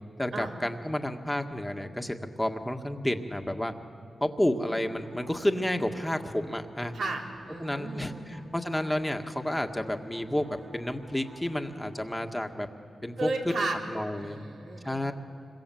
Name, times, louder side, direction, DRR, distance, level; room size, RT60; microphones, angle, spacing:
voice 1, 0.2-3.7 4.2-6.9 7.6-10.5 10.7-12.7 13.0-13.5 13.9-14.4 14.8-15.1, left 1 dB, 10° left, 5 dB, 1.9 m, -30 dB
sound 1, 5.0-12.2, right 1 dB, 60° right, 6.0 m, -51 dB
voice 2, 6.9-8.4 13.2-13.8 14.1-15.0, right 2 dB, 80° right, -2 dB, 3.9 m, -34 dB
26.0 x 22.5 x 7.8 m, 2.5 s
supercardioid pair, 45°, 0 cm